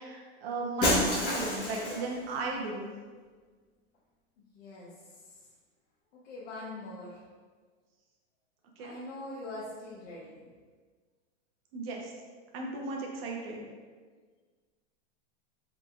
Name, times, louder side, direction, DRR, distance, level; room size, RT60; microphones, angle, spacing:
voice 1, 0.0-2.9 8.8-9.0 11.7-12.1 12.5-13.7, right 3 dB, 55° right, 0 dB, 0.8 m, -36 dB
Shatter, 0.8-2.2, left 1 dB, 30° left, 1.2 m, -28 dB
voice 2, 4.4-4.9 6.2-7.2 8.8-10.5, left 2 dB, 65° left, -7 dB, 0.9 m, -43 dB
3.9 x 3.5 x 2.4 m, 1.5 s
supercardioid pair, 155°, 35 cm